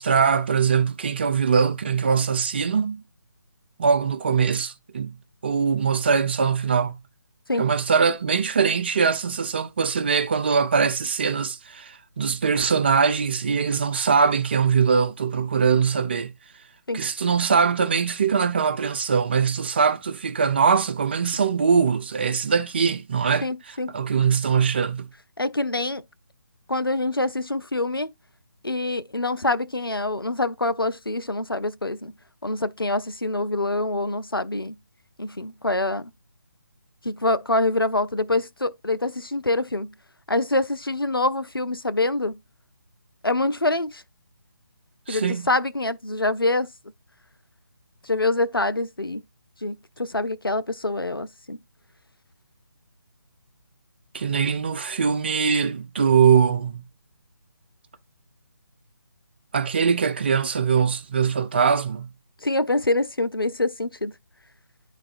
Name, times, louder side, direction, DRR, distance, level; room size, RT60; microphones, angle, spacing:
voice 1, 0.0-3.0 3.8-5.2 5.4-7.0 7.6-16.3 16.9-25.1 45.1-45.5 54.1-56.9 59.5-62.1, right 6 dB, 30° right, 0.4 m, -22 dB
voice 2, 23.4-23.9 25.4-26.0 26.7-28.1 28.6-32.1 32.4-34.7 35.2-36.1 37.0-39.9 40.3-42.4 43.2-44.0 45.1-46.7 48.0-49.2 49.6-51.6 62.4-64.1, left 2 dB, 90° left, 0.6 m, -25 dB
11.0 x 4.0 x 2.6 m
figure-of-eight pair, 150°, 12 cm